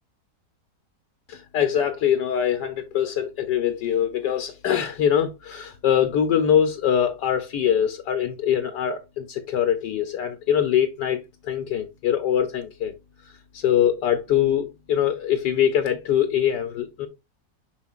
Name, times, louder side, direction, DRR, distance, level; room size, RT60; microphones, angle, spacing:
voice 1, 1.3-12.9 13.2-17.1, left 9 dB, 70° left, 1.3 m, -23 dB
7.3 x 6.0 x 2.4 m
omnidirectional pair, 2.0 m